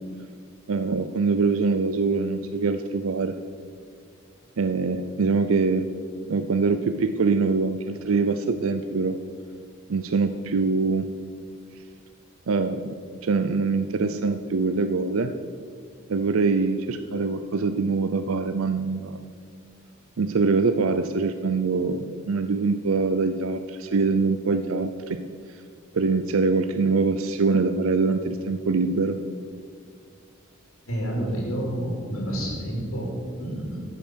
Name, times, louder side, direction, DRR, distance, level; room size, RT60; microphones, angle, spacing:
voice 1, 0.7-3.3 4.6-5.9 6.3-9.2 9.9-11.1 12.5-12.8 13.2-15.3 16.1-19.2 20.2-25.2 25.9-29.2, right 4 dB, 70° right, 8 dB, 0.5 m, -24 dB
voice 2, 30.9-33.8, right 1 dB, 75° left, -2 dB, 3.1 m, -29 dB
13.5 x 6.9 x 6.3 m, 2.1 s
head